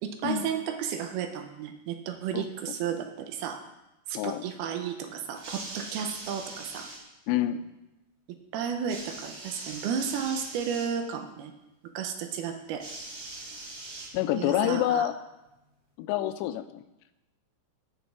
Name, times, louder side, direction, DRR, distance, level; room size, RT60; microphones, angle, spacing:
voice 1, 0.0-3.6 4.1-6.9 8.5-11.5 11.8-12.9 14.3-15.1, right 7 dB, 80° right, 6 dB, 2.6 m, -33 dB
sound 1, 5.3-7.0 8.9-10.9 12.8-14.5 15.5-15.6, right 2 dB, 50° right, 3.0 m, -42 dB
voice 2, 7.3-7.6 14.1-15.1 16.0-16.8, left 12 dB, 90° left, 9 dB, 2.8 m, -27 dB
18.0 x 6.1 x 3.5 m, 0.96 s
omnidirectional pair, 4.9 m